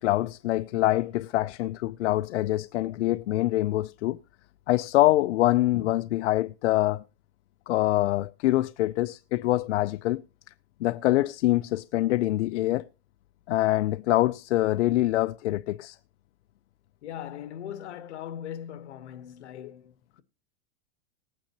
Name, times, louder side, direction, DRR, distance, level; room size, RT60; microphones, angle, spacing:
voice 1, 0.0-4.2 4.7-7.0 7.7-10.2 10.8-12.8 13.5-16.0, left 16 dB, 90° left, 0.5 m, -25 dB
voice 2, 17.0-20.2, left 10 dB, 75° left, 1.2 m, -40 dB
20.0 x 9.0 x 2.9 m
supercardioid pair, 175°, 34 cm